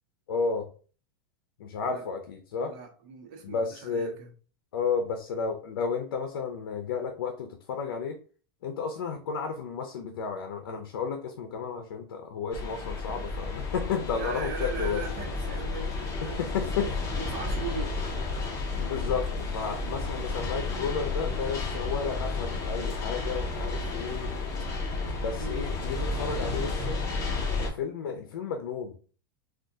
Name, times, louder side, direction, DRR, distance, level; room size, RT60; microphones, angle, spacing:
voice 1, 0.3-0.7 1.6-2.7 3.4-4.1 4.7-8.2 8.6-15.0 16.2-16.9 18.8-24.3 25.1-26.9 27.6-29.0, left 5 dB, 85° left, 0.6 m, -32 dB
voice 2, 2.6-4.3 14.1-16.8 17.2-18.0 19.6-19.8 25.4-25.7, right 5 dB, 55° right, 0.9 m, -40 dB
sound 1, 12.5-27.7, left 3 dB, 25° left, 0.9 m, -32 dB
3.5 x 2.4 x 2.6 m
supercardioid pair, 145°, 12 cm